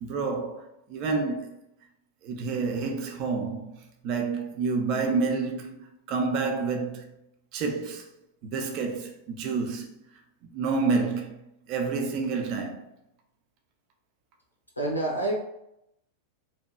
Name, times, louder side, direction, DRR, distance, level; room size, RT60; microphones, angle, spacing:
voice 1, 0.0-1.5 2.2-7.1 7.5-8.1 8.4-9.9 10.5-11.4 11.7-12.9, right 4 dB, 40° right, 0.4 m, -29 dB
voice 2, 14.8-15.4, right 2 dB, 85° left, 0.6 m, -27 dB
2.8 x 2.2 x 2.2 m
figure-of-eight pair, 90°, 0 cm